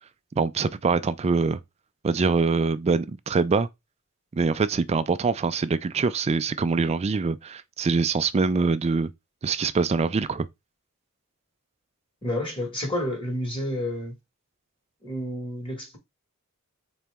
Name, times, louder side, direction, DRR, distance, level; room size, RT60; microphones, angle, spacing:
voice 1, 0.4-1.6 2.0-3.7 4.3-9.1 9.4-10.5, right 4 dB, 30° right, 0.3 m, -24 dB
voice 2, 12.2-14.2 15.0-16.0, left 1 dB, 25° left, 1.7 m, -30 dB
4.1 x 2.9 x 3.4 m
head